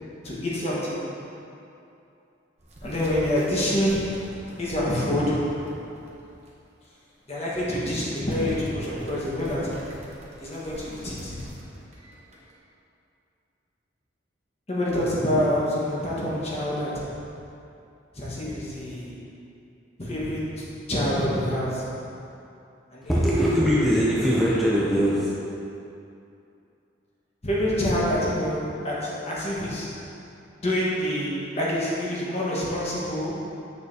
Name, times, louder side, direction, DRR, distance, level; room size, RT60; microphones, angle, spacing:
voice 1, 0.2-1.1 2.8-5.7 7.3-9.9 10.4-11.4 14.7-17.1 18.1-19.1 20.0-21.9 22.9-23.2 27.4-30.0 30.6-33.6, left 1 dB, 35° left, -6 dB, 1.3 m, -27 dB
sound 1, 2.6-6.5 6.8-6.9 7.5-7.8 8.2-12.5, right 1 dB, 35° right, 0.9 m, -45 dB
voice 2, 23.1-25.3, equal, ahead, -7 dB, 0.5 m, -21 dB
6.7 x 6.6 x 2.7 m, 2.7 s
head